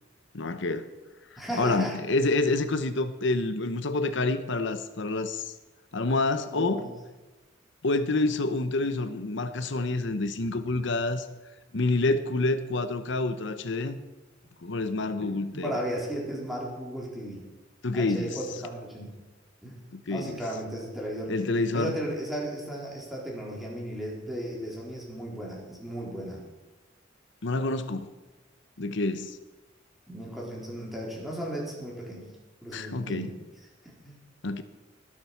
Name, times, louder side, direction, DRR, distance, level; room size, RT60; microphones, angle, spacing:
voice 1, 0.3-0.9 1.3-5.5 5.9-6.8 7.8-11.3 11.7-14.0 14.6-15.7 17.8-18.3 19.9-20.4 21.3-21.9 27.4-28.1 28.8-29.4 32.7-33.3 34.4-34.6, left 2 dB, 65° left, 10 dB, 0.9 m, -28 dB
voice 2, 1.4-2.0 6.5-6.9 15.2-17.4 17.9-19.1 19.6-19.8 20.1-21.3 21.7-26.4 30.1-32.2 32.6-33.3 34.0-34.2, right 1 dB, ahead, -4 dB, 3.9 m, -35 dB
20.5 x 7.5 x 5.9 m, 1.2 s
head